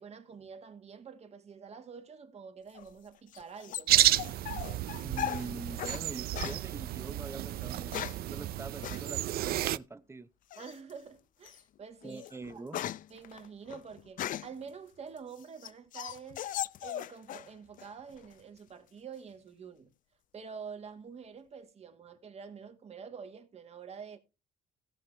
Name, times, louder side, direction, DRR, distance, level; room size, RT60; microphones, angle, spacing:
voice 1, 0.0-4.1 10.6-12.2 12.5-12.7 13.1-16.4 16.8-19.9 20.3-24.2, right 6 dB, 40° right, 1.8 m, -47 dB
sound 1, 2.7-6.0 6.3-6.6 7.6-8.3 8.8-9.0 10.5-10.9 11.4-11.6 12.0-14.6 15.2-17.5 17.8-18.4, left 11 dB, 50° left, 0.5 m, -39 dB
sound 2, 3.9-9.8, right 14 dB, 65° right, 0.5 m, -31 dB
voice 2, 5.0-10.3 12.0-12.8, right 3 dB, 15° right, 0.7 m, -44 dB
17.0 x 6.0 x 3.3 m
cardioid pair, 110°, 17 cm